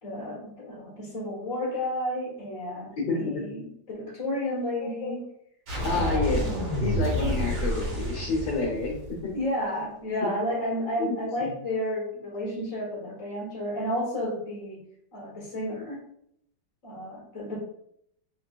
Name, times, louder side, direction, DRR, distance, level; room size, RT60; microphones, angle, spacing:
voice 1, 0.0-5.2 5.9-6.4 9.3-14.8 15.1-16.0 16.8-17.6, left 1 dB, 45° left, -3 dB, 2.0 m, -32 dB
voice 2, 3.0-3.4 5.0-5.1 5.8-6.4 6.8-9.2 11.0-11.1, left 3 dB, 65° left, -4 dB, 1.5 m, -28 dB
sound 1, 5.7-9.4, equal, 50° right, 2.3 m, -29 dB
4.9 x 4.0 x 2.4 m, 0.72 s
omnidirectional pair, 2.0 m